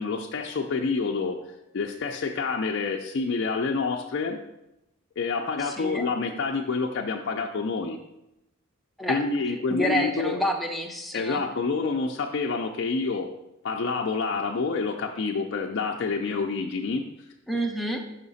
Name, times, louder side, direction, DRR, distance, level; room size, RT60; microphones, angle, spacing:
voice 1, 0.0-1.4 1.7-4.4 5.2-8.0 9.1-10.4 11.1-13.3 13.6-17.0, left 4 dB, 55° left, 0 dB, 0.4 m, -28 dB
voice 2, 5.6-6.1 9.0-9.2 9.7-11.4 17.5-18.0, equal, ahead, 2 dB, 0.6 m, -28 dB
5.9 x 5.6 x 4.0 m, 0.90 s
head